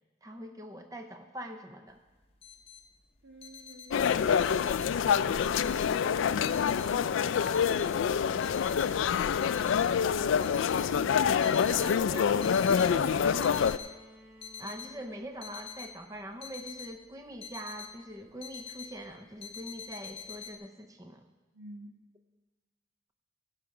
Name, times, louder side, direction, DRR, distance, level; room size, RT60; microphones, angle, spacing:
voice 1, 0.2-2.0 10.9-13.7 14.6-21.2, right 1 dB, 15° right, 5 dB, 0.7 m, -43 dB
sound 1, 1.9-2.0 2.2-2.8 3.2-5.0 5.4-6.1 6.4-8.1 8.4-8.9 9.4-10.0 10.4-12.0 12.3-12.9 13.3-14.0 14.3-14.9 15.4-17.9 18.2-19.0 19.4-20.6, left 7 dB, 30° left, 0.7 m, -46 dB
voice 2, 3.2-9.3 9.8-10.5 21.5-21.9, right 1 dB, 70° right, 2 dB, 1.5 m, -50 dB
sound 2, 3.9-13.8, left 7 dB, 75° left, 0.3 m, -26 dB
Bowed string instrument, 12.0-16.0 17.3-17.4, equal, 35° right, 3.0 m, -55 dB
15.5 x 5.7 x 4.9 m, 1.2 s
head